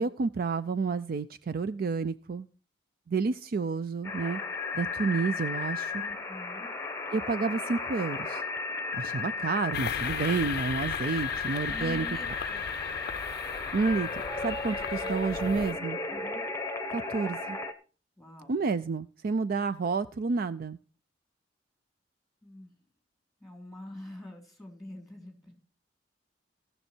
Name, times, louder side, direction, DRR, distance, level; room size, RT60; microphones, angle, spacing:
voice 1, 0.0-2.5 3.1-4.4 4.7-6.0 7.1-8.4 8.9-12.1 13.7-16.0 16.9-17.6 18.5-20.8, right 4 dB, 50° right, 13 dB, 0.4 m, -30 dB
sound 1, 4.0-17.7, left 4 dB, 15° left, 1.0 m, -34 dB
voice 2, 6.0-6.7 11.7-12.7 15.0-15.1 16.1-16.4 18.2-18.6 22.4-22.7 23.4-25.5, left 1 dB, ahead, 3 dB, 3.4 m, -45 dB
sound 2, 9.7-15.7, left 8 dB, 55° left, 0.5 m, -38 dB
18.0 x 6.6 x 4.4 m, 0.37 s
head